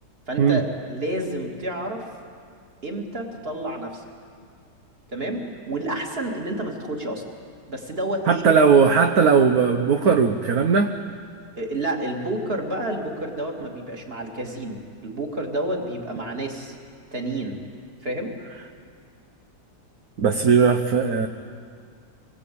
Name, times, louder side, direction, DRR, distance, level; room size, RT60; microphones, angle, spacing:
voice 1, 0.3-2.1 2.8-4.0 5.1-7.2 7.7-8.5 9.9-10.1 11.6-16.8 17.1-17.6 18.0-18.3, right 1 dB, 30° right, 1 dB, 2.8 m, -30 dB
voice 2, 8.3-10.9 20.2-21.3, right 6 dB, 60° right, 5 dB, 1.4 m, -18 dB
26.5 x 21.0 x 8.6 m, 2.2 s
omnidirectional pair, 2.0 m